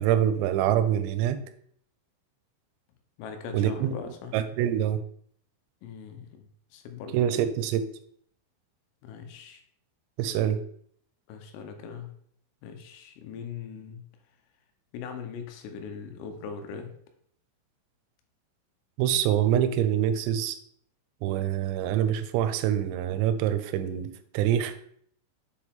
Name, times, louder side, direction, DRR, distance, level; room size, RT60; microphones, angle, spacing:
voice 1, 0.0-1.4 3.5-3.9 4.3-5.0 7.1-7.9 10.2-10.6 19.0-20.6 21.2-24.7, right 10 dB, 90° right, 11 dB, 3.3 m, -25 dB
voice 2, 3.2-4.4 5.8-7.5 9.0-9.6 11.3-12.2 12.6-14.1 14.9-17.0, left 6 dB, 85° left, 6 dB, 3.4 m, -40 dB
7.6 x 4.7 x 3.5 m, 0.65 s
omnidirectional pair, 5.9 m